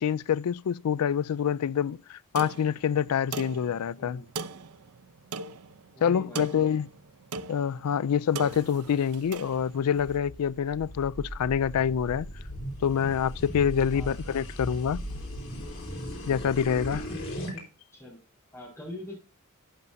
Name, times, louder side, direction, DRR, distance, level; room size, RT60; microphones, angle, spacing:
voice 1, 0.0-4.2 6.0-6.8 7.5-12.3 12.8-15.0 16.3-17.0, left 8 dB, 80° left, 0.4 m, -26 dB
sound 1, 2.3-10.1, right 2 dB, 80° right, 0.7 m, -40 dB
voice 2, 3.9-4.3 5.9-6.6 13.9-14.1 16.9-17.7 17.9-18.2 18.5-19.2, left 1 dB, 15° left, 4.2 m, -42 dB
sound 2, 10.1-17.6, equal, 60° left, 4.4 m, -38 dB
12.5 x 9.5 x 2.7 m
head